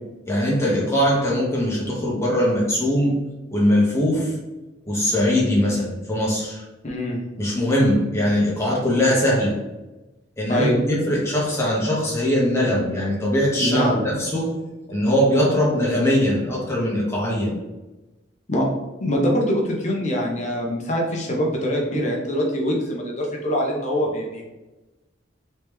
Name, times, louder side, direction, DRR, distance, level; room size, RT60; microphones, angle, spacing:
voice 1, 0.3-3.2 3.5-4.3 4.8-6.6 7.4-9.6 10.4-14.5 14.9-17.6, equal, 15° left, -4 dB, 1.0 m, -21 dB
voice 2, 6.8-7.2 10.5-10.8 13.6-14.0 18.5-18.7 19.0-24.4, equal, 40° left, -1 dB, 0.6 m, -23 dB
3.2 x 3.0 x 3.4 m, 1.1 s
head